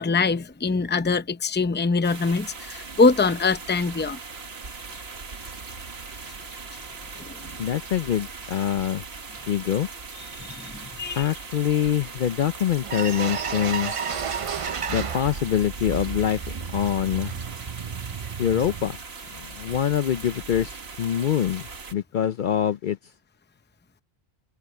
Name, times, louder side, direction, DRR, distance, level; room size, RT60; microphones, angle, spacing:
voice 1, 0.0-4.2 7.2-7.5 10.4-11.3, left 4 dB, 15° left, 0.6 m, -23 dB
sound 1, 2.0-21.9, right 4 dB, 80° right, 1.8 m, -39 dB
voice 2, 7.6-9.0 9.5-9.9 11.2-13.9 14.9-17.3 18.4-19.0 19.3-23.0, left 9 dB, 60° left, 0.6 m, -25 dB
sound 2, 12.4-12.5 12.8-15.5 15.8-18.8, right 6 dB, 40° right, 0.5 m, -32 dB
omnidirectional pair, 1.0 m